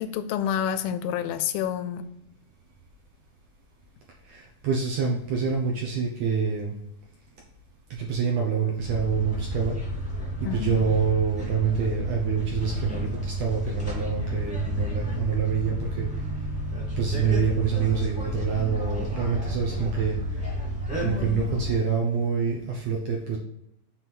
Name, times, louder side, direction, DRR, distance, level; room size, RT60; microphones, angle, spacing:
voice 1, 0.0-2.0 10.4-10.8 21.0-21.4, left 9 dB, 85° left, 11 dB, 2.4 m, -29 dB
voice 2, 4.3-6.7 7.9-9.8 10.5-16.1 17.0-20.2 21.0-23.4, right 6 dB, 75° right, -1 dB, 1.6 m, -26 dB
sound 1, 8.8-21.7, equal, 10° left, 0.6 m, -31 dB
7.4 x 3.3 x 5.9 m, 0.80 s
omnidirectional pair, 4.2 m